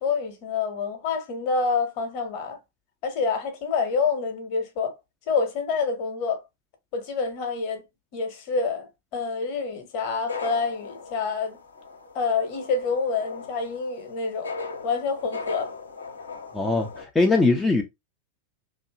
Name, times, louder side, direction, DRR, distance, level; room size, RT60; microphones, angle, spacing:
voice 1, 0.0-2.6 3.0-5.0 5.3-6.4 6.9-7.8 8.1-11.6 12.1-14.5 14.8-15.7, left 4 dB, 45° left, 0.9 m, -27 dB
sound 1, 10.1-17.0, left 4 dB, 75° left, 0.8 m, -38 dB
voice 2, 16.5-17.8, left 3 dB, 10° left, 0.5 m, -21 dB
2.7 x 2.5 x 2.3 m
figure-of-eight pair, 90°, 0 cm